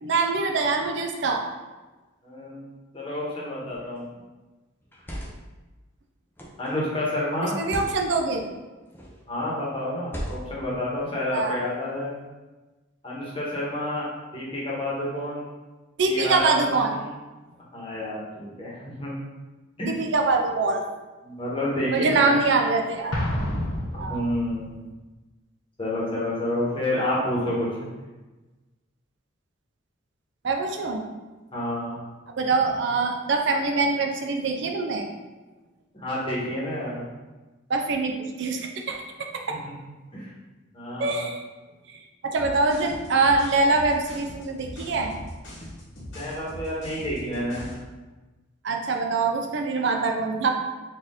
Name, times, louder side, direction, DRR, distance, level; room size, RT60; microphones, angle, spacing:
voice 1, 0.0-1.5 7.4-8.5 11.3-11.6 16.0-16.9 19.9-20.8 21.9-23.2 24.0-24.2 30.4-31.0 32.4-35.1 37.7-39.6 41.0-41.5 41.9-45.1 48.6-50.5, right 3 dB, 60° right, 3 dB, 0.4 m, -24 dB
voice 2, 2.2-2.7 2.9-4.1 6.6-7.6 9.3-12.1 13.0-14.1 14.3-15.5 16.1-17.1 17.7-19.1 19.8-19.9 21.2-22.4 23.9-24.7 25.8-27.9 31.5-32.0 35.9-37.0 39.5-39.7 40.1-40.3 40.7-41.2 46.0-47.8, left 1 dB, 25° left, -6 dB, 1.1 m, -29 dB
sound 1, 3.7-4.0 4.8-5.5 6.4-6.7 7.6-8.0 8.9-9.2 10.0-10.7, equal, 10° left, 0.5 m, -37 dB
Explosion, 23.1-24.8, left 1 dB, 80° left, 0.9 m, -29 dB
sound 2, 42.4-47.8, left 1 dB, 65° left, 1.3 m, -40 dB
4.2 x 2.6 x 3.6 m, 1.2 s
head